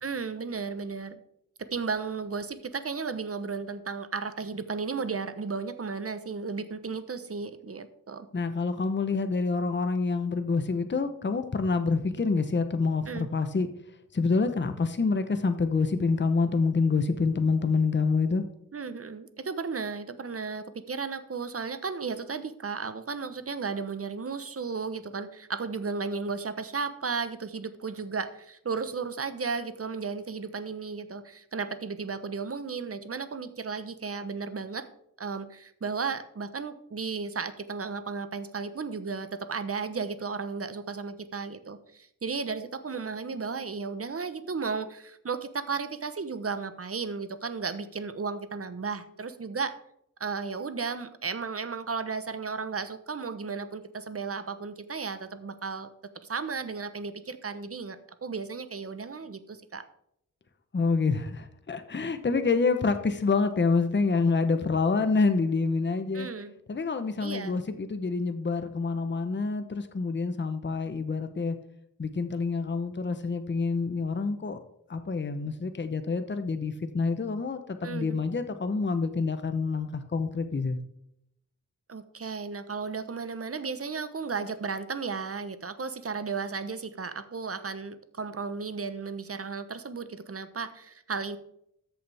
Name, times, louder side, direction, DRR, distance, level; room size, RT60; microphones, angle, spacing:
voice 1, 0.0-1.2 1.7-8.3 13.1-13.3 18.7-34.9 35.2-49.7 50.2-55.9 56.3-59.9 66.1-66.5 67.2-67.6 77.8-78.2 81.9-91.4, right 5 dB, 40° right, 11 dB, 1.0 m, -34 dB
voice 2, 8.3-13.7 14.1-18.4 60.7-66.3 66.7-71.6 72.0-74.6 74.9-80.8, left 4 dB, 35° left, 9 dB, 0.9 m, -27 dB
13.5 x 6.9 x 3.5 m, 0.74 s
wide cardioid pair, 80°, 34 cm